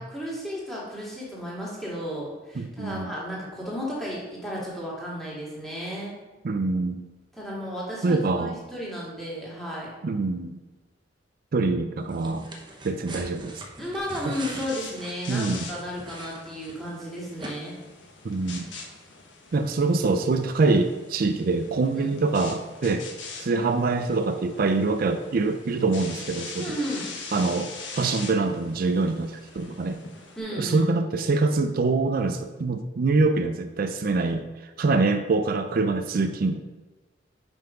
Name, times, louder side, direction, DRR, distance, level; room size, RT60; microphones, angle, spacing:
voice 1, 0.0-6.1 7.4-9.9 13.1-13.2 13.8-17.8 21.9-22.1 26.6-27.1 30.4-30.9, equal, ahead, -6 dB, 2.2 m, -34 dB
voice 2, 2.6-3.1 6.4-7.0 8.0-8.6 10.0-10.6 11.5-12.5 12.8-13.6 14.3-14.4 15.3-15.7 18.2-18.7 19.5-23.1 23.4-26.8 27.3-27.7 28.0-30.0 30.6-36.6, right 3 dB, 50° right, 8 dB, 0.4 m, -25 dB
sound 1, 12.1-17.0 17.4-17.5, right 1 dB, 25° right, 0.9 m, -42 dB
sound 2, 14.0-30.4, left 4 dB, 85° left, 1.2 m, -43 dB
5.6 x 5.4 x 5.1 m, 1.2 s
head